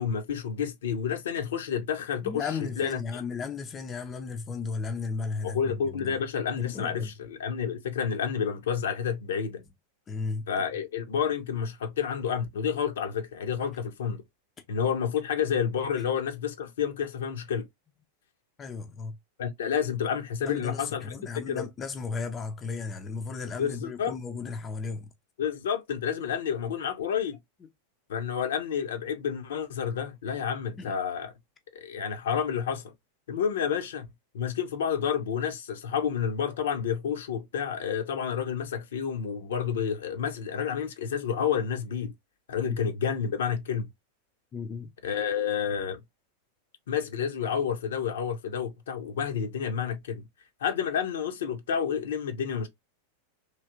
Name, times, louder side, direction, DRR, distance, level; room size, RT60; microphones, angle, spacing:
voice 1, 0.0-3.2 5.4-9.6 10.5-14.2 14.7-17.7 19.4-21.1 21.5-21.6 23.6-24.1 25.4-27.4 28.1-31.3 31.7-32.9 33.3-34.1 34.3-42.1 42.5-43.9 45.0-46.0 46.9-50.2 50.6-52.7, left 7 dB, 60° left, 0.7 m, -30 dB
voice 2, 2.2-6.2 6.6-7.1 10.1-10.5 18.6-19.2 20.4-25.1 30.8-31.0 42.6-42.8 44.5-44.9, left 4 dB, 25° left, 0.5 m, -35 dB
3.2 x 2.8 x 2.4 m
figure-of-eight pair, 90°, 0 cm